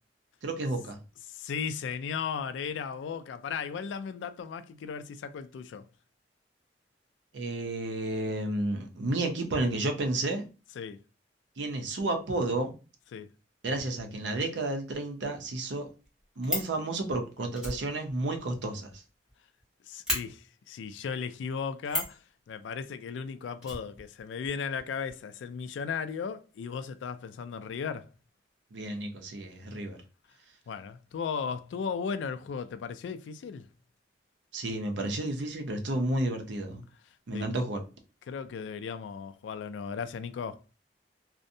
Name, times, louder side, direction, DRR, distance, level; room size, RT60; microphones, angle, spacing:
voice 1, 0.4-1.0 7.3-10.4 11.6-12.7 13.6-15.9 16.4-18.9 28.7-30.0 34.5-36.8 37.3-37.8, right 2 dB, 80° right, 0.6 m, -31 dB
voice 2, 1.3-5.8 10.8-11.0 13.1-13.3 19.9-28.1 30.7-33.7 37.3-37.5 38.3-40.6, left 6 dB, 90° left, 0.3 m, -36 dB
Fire, 16.0-16.8 17.5-19.3 19.6-19.7 20.0-20.2 21.8-22.2 23.6-24.5 24.8-24.9 25.1-25.2, left 1 dB, 5° right, 0.9 m, -34 dB
2.6 x 2.1 x 2.6 m
head